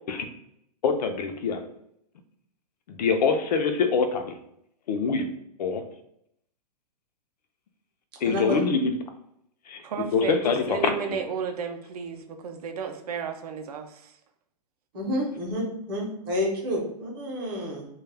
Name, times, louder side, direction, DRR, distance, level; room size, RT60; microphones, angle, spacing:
voice 1, 0.8-1.6 2.9-4.4 4.9-5.3 5.6-5.8 8.2-9.0 9.7-9.8 10.1-10.9, left 5 dB, 80° left, 6 dB, 0.5 m, -24 dB
voice 2, 8.2-8.6 14.9-17.9, left 1 dB, 35° right, -1 dB, 0.7 m, -29 dB
voice 3, 9.8-14.1, right 6 dB, 65° right, 6 dB, 0.4 m, -33 dB
2.3 x 2.1 x 3.2 m, 0.73 s
hypercardioid pair, 170°, 21 cm